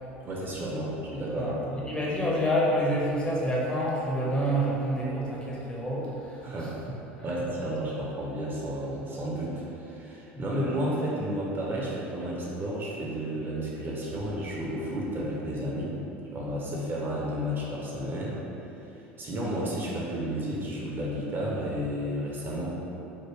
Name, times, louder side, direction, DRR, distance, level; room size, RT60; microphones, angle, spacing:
voice 1, 0.2-1.8 6.4-6.7 7.2-15.9 16.3-18.4 19.2-22.7, equal, 35° right, -4 dB, 0.7 m, -32 dB
voice 2, 1.4-6.7 7.2-7.3 7.5-7.7 10.4-10.5 22.4-22.6, equal, 15° left, -5 dB, 0.8 m, -28 dB
3.3 x 2.1 x 3.2 m, 3.0 s
hypercardioid pair, 75°, 6 cm